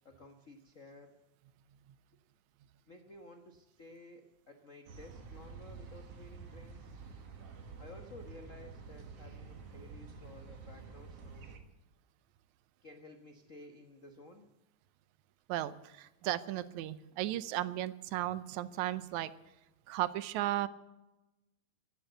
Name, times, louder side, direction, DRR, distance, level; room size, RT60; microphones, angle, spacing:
voice 1, 0.0-1.2 2.9-6.8 7.8-11.5 12.8-14.5, left 2 dB, 75° left, 5 dB, 0.7 m, -54 dB
sound 1, 4.9-11.6, right 5 dB, 60° right, 2.6 m, -49 dB
voice 2, 15.5-19.3 19.9-20.7, right 14 dB, 80° right, 15 dB, 2.1 m, -35 dB
16.0 x 11.0 x 8.0 m, 1.0 s
omnidirectional pair, 3.4 m